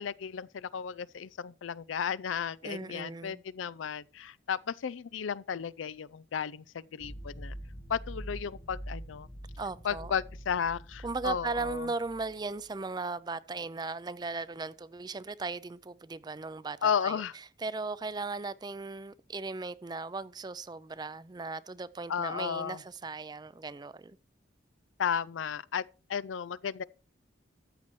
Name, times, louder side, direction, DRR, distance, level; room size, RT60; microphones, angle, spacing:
voice 1, 0.0-7.5 7.9-9.3 9.8-11.9 16.8-17.3 22.1-22.8 25.0-25.8 26.1-26.8, left 7 dB, 90° left, 0.4 m, -34 dB
voice 2, 2.6-3.4 9.6-10.1 11.0-24.2, right 3 dB, 20° right, 0.4 m, -37 dB
sound 1, 7.0-12.7, equal, 35° left, 1.6 m, -44 dB
13.5 x 8.2 x 3.2 m
head